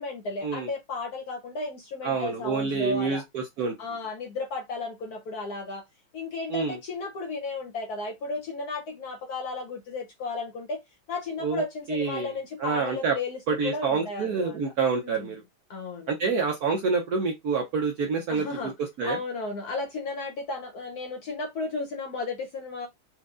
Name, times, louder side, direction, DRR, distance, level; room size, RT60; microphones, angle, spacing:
voice 1, 0.0-3.2 3.8-5.8 6.1-10.8 11.1-14.6 14.9-15.3 15.7-16.1 18.3-18.7 19.0-22.9, left 3 dB, 65° left, 1.0 m, -34 dB
voice 2, 2.0-3.7 6.5-6.8 11.4-11.6 11.9-12.3 12.6-13.2 13.5-15.4 16.1-18.7 19.0-19.2, right 5 dB, 70° right, 0.9 m, -27 dB
4.3 x 2.6 x 2.4 m
omnidirectional pair, 2.2 m